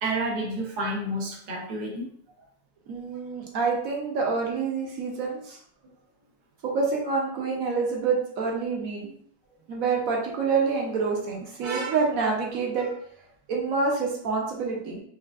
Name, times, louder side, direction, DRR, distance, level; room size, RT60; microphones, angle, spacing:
voice 1, 0.0-2.1, right 1 dB, 80° right, -2 dB, 0.4 m, -30 dB
voice 2, 2.9-5.6 6.6-9.1 9.7-12.9 13.5-15.0, right 4 dB, 60° right, -1 dB, 1.0 m, -27 dB
4.5 x 2.5 x 2.4 m, 0.62 s
omnidirectional pair, 2.0 m